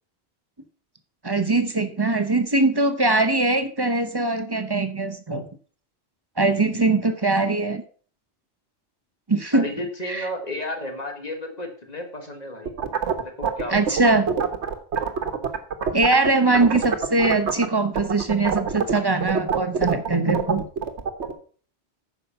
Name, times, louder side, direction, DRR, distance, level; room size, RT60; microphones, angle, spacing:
voice 1, 1.2-5.5 6.4-7.8 9.3-9.7 10.1-10.3 13.7-14.4 15.9-20.6, right 2 dB, 25° right, 9 dB, 0.9 m, -21 dB
voice 2, 6.7-7.0 9.5-12.7 13.2-14.0, left 1 dB, 35° left, 4 dB, 1.8 m, -33 dB
sound 1, 12.7-16.3 16.5-17.7 18.0-21.3, right 6 dB, 80° right, 1.4 m, -25 dB
9.2 x 6.1 x 5.6 m, 0.43 s
omnidirectional pair, 1.1 m